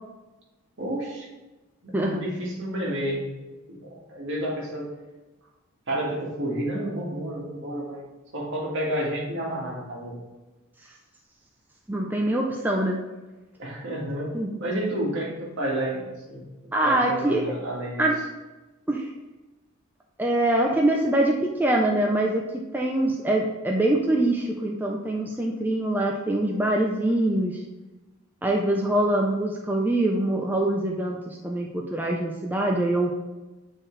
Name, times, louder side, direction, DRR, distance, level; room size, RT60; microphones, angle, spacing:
voice 1, 0.8-1.3 1.8-3.4 3.7-4.9 5.9-8.1 8.3-10.2 13.6-14.3 14.6-16.4 16.8-18.1, right 1 dB, 60° right, -3 dB, 1.9 m, -30 dB
voice 2, 1.9-2.2 11.9-13.0 14.3-14.6 16.7-17.4 18.0-18.1 18.9-19.1 20.2-21.3 21.6-22.4 22.7-27.6 28.4-33.1, right 1 dB, 10° right, -1 dB, 0.5 m, -24 dB
7.9 x 4.6 x 3.2 m, 1.1 s
head